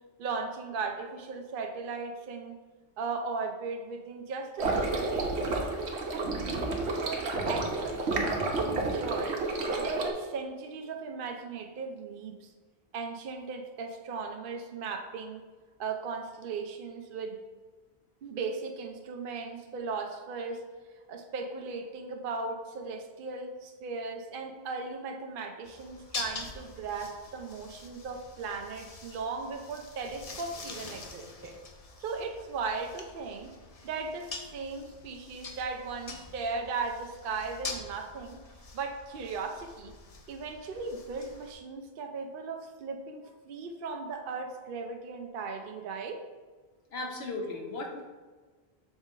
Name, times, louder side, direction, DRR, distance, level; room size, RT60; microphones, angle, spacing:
voice 1, 0.2-2.6 3.0-5.7 6.1-9.4 9.8-12.5 12.9-15.4 15.8-17.4 18.2-20.6 21.1-31.6 32.0-33.5 33.8-38.4 38.7-39.9 40.3-46.2, right 4 dB, 60° right, 3 dB, 0.7 m, -37 dB
sound 1, 4.6-10.1, right 3 dB, 85° right, 1.1 m, -30 dB
sound 2, 25.6-41.5, left 3 dB, 40° left, 0.6 m, -45 dB
voice 2, 46.9-48.1, left 2 dB, 70° left, 1 dB, 1.1 m, -36 dB
6.2 x 4.1 x 3.7 m, 1.4 s
omnidirectional pair, 1.1 m